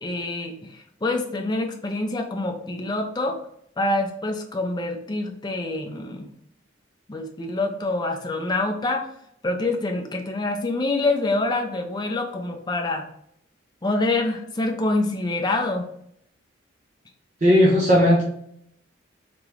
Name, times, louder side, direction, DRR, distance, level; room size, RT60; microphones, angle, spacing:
voice 1, 0.0-3.4 3.8-6.3 7.1-9.1 9.4-13.0 13.8-15.8, left 2 dB, 20° left, 3 dB, 0.5 m, -26 dB
voice 2, 17.4-18.2, equal, 40° right, -4 dB, 0.7 m, -16 dB
3.6 x 3.0 x 3.2 m, 0.71 s
head